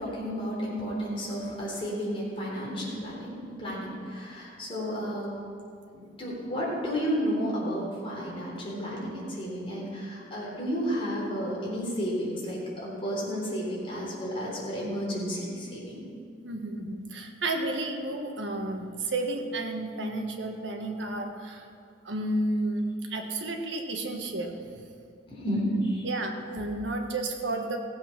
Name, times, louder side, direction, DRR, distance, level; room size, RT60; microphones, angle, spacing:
voice 1, 0.0-5.3 5.9-16.0 25.3-26.1, equal, 30° left, -5 dB, 4.0 m, -32 dB
voice 2, 16.4-21.6 22.0-24.7 26.0-27.8, right 2 dB, 75° right, 3 dB, 1.4 m, -32 dB
16.0 x 7.9 x 6.0 m, 2.3 s
head